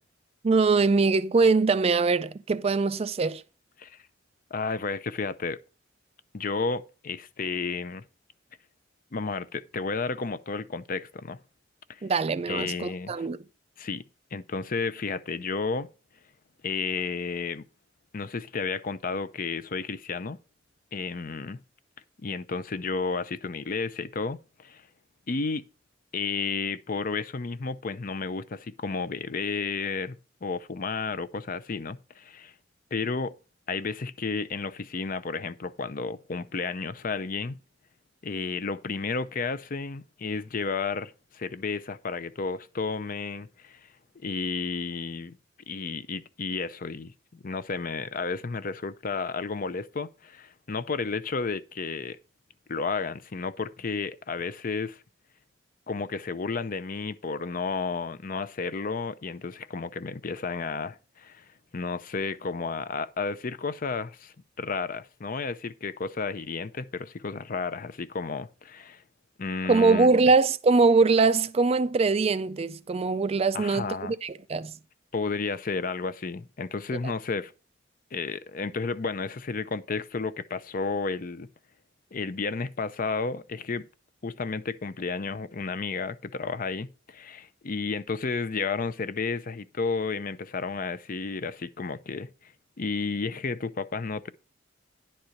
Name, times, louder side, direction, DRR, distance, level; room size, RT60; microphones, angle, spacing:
voice 1, 0.4-3.4 12.0-13.4 69.7-74.7 77.0-77.1, right 4 dB, 30° right, 0.3 m, -22 dB
voice 2, 4.5-5.6 6.3-8.0 9.1-11.4 11.9-12.0 12.5-13.3 13.8-14.0 14.3-15.9 16.6-17.6 18.1-20.4 20.9-21.6 22.2-24.8 25.3-25.7 26.1-32.5 32.9-33.3 33.7-37.6 38.2-43.8 44.2-45.4 45.7-52.2 52.7-55.0 55.9-61.4 61.7-69.0 69.4-70.1 73.5-74.1 75.1-77.5 78.1-81.5 82.1-83.9 84.2-92.5 92.8-94.3, left 4 dB, 45° left, 0.6 m, -32 dB
10.5 x 4.3 x 6.4 m
head